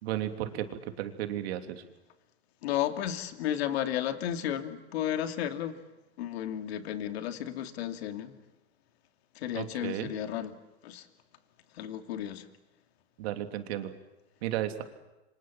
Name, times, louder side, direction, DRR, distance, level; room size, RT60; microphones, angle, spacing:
voice 1, 0.0-1.8 9.5-10.1 13.2-13.9 14.4-14.8, right 12 dB, 65° right, 3.2 m, -34 dB
voice 2, 2.6-5.8 6.2-8.4 9.3-11.1 11.7-12.5, left 11 dB, 70° left, 2.7 m, -33 dB
28.5 x 25.5 x 7.6 m
hypercardioid pair, 125°, 33 cm